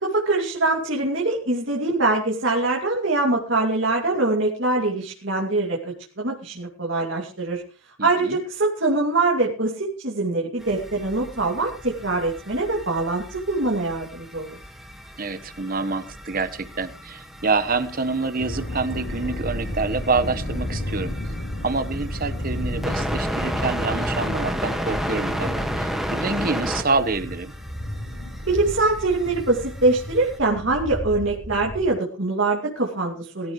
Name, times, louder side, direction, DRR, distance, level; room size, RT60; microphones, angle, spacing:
voice 1, 0.0-5.8 6.2-7.6 8.0-14.6 28.4-33.5, right 2 dB, 60° right, -2 dB, 2.7 m, -23 dB
voice 2, 8.0-8.4 15.2-21.1 21.6-27.5, right 3 dB, 45° right, 11 dB, 1.3 m, -27 dB
sound 1, 10.6-30.4, equal, ahead, 1.8 m, -33 dB
sound 2, 18.4-31.9, left 1 dB, 45° left, 4.9 m, -32 dB
21.0 x 14.0 x 3.2 m, 0.37 s
head